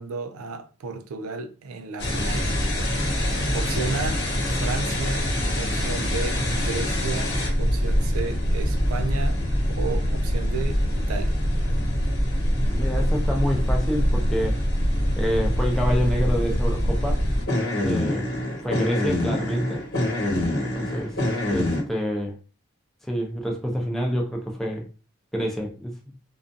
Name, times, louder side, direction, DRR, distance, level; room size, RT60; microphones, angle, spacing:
voice 1, 0.0-2.6 3.5-5.3 5.5-9.4 9.7-11.4, right 4 dB, 85° right, 0.4 m, -33 dB
sound 1, 2.0-21.8, equal, 50° left, 1.0 m, -24 dB
voice 2, 12.7-14.6 15.2-17.2 17.8-18.3 18.6-19.8 20.7-21.2 21.5-22.4 23.1-24.9 25.3-26.0, equal, ahead, 0.4 m, -27 dB
2.4 x 2.3 x 2.5 m
head